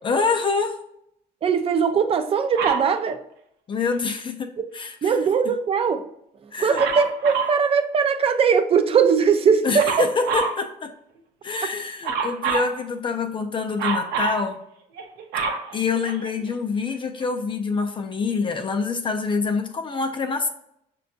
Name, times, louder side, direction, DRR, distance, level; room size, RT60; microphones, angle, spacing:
voice 1, 0.0-0.8 3.7-5.1 6.5-6.8 9.6-10.9 11.4-14.6 15.7-20.5, left 4 dB, 30° left, 0.4 m, -26 dB
voice 2, 1.4-3.2 5.0-6.0 6.6-10.1, right 6 dB, 35° right, 0.4 m, -20 dB
Dog, 2.6-2.9 6.7-7.6 9.8-10.6 12.0-12.7 13.8-14.4 15.0-16.5 17.2-17.3, right 5 dB, 85° right, 0.6 m, -26 dB
5.7 x 2.2 x 2.6 m
cardioid pair, 110°, 17 cm